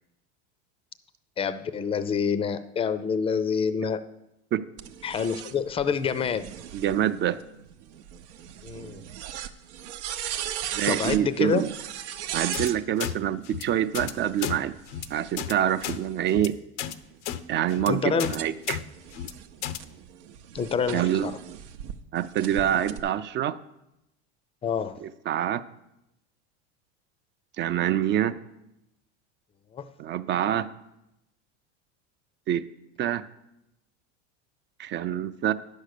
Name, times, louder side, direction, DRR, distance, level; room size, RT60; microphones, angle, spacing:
voice 1, 1.4-4.0 5.0-6.5 8.6-9.0 10.9-11.6 17.9-18.3 20.5-21.4 24.6-25.0 29.7-29.9, left 6 dB, 15° left, 14 dB, 0.5 m, -27 dB
sound 1, 4.8-12.8 13.9-16.3 16.9-21.9 22.4-23.0, right 10 dB, 80° right, 0.8 m, -38 dB
voice 2, 6.7-7.4 10.7-11.7 12.3-14.7 15.1-16.6 17.5-18.8 20.9-21.3 22.1-23.6 25.0-25.6 27.6-28.3 30.0-30.7 32.5-32.6 33.0-33.2 34.8-35.5, right 10 dB, 35° right, 13 dB, 0.5 m, -26 dB
sound 2, 12.5-12.7 13.0-13.1 13.4-13.6 13.9-14.1 14.4-14.6 14.9-15.1 15.4-15.5 15.8-16.0 16.3-16.5 16.8-16.9 17.2-17.4 17.7-17.9 18.2-18.4 18.7-18.8 19.1-19.3 19.6-19.8, left 11 dB, 85° left, 0.7 m, -32 dB
10.0 x 6.4 x 6.6 m, 0.89 s
supercardioid pair, 115°, 34 cm